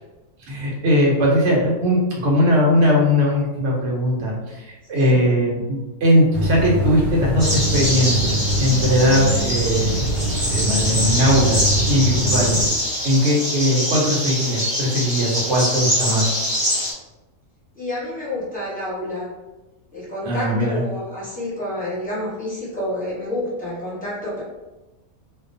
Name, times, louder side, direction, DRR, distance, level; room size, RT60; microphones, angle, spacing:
voice 1, 0.4-10.0 10.5-12.6 13.0-16.3 20.2-20.8, equal, 60° right, -3 dB, 0.9 m, -19 dB
sound 1, 6.3-12.7, right 1 dB, 85° right, 1.1 m, -23 dB
sound 2, 7.4-16.9, equal, 20° right, 0.6 m, -24 dB
voice 2, 17.7-19.3 19.9-24.4, left 1 dB, 5° left, -10 dB, 0.9 m, -29 dB
2.3 x 2.2 x 2.5 m, 1.1 s
omnidirectional pair, 1.5 m